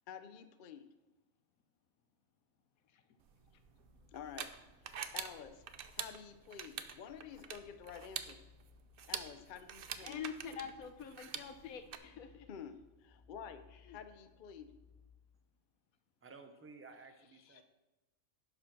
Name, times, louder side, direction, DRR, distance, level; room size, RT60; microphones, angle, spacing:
voice 1, 0.1-0.9 4.1-4.5 4.8-5.6 5.9-8.4 9.0-10.2 12.5-12.7 13.0-13.6 13.9-14.7, left 7 dB, 55° left, 10 dB, 0.6 m, -50 dB
sound 1, 3.3-12.0, right 8 dB, 55° right, 0.6 m, -46 dB
sound 2, 3.6-15.1, left 5 dB, 10° left, 1.0 m, -66 dB
voice 2, 10.0-12.5 13.8-14.0 17.4-17.6, left 7 dB, 90° left, 9 dB, 1.2 m, -46 dB
voice 3, 16.2-17.6, right 4 dB, 15° right, 6 dB, 0.5 m, -55 dB
10.5 x 5.2 x 6.0 m, 1.1 s
omnidirectional pair, 1.4 m